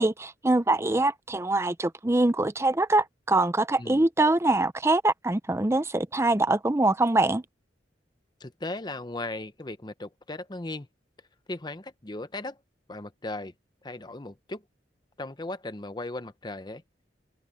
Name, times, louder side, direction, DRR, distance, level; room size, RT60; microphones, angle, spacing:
voice 1, 0.0-7.4, right 2 dB, 15° right, 0.6 m, -24 dB
voice 2, 8.4-10.9 11.5-12.6 12.9-13.5 13.8-14.6 15.2-16.8, left 2 dB, 25° left, 0.9 m, -37 dB
head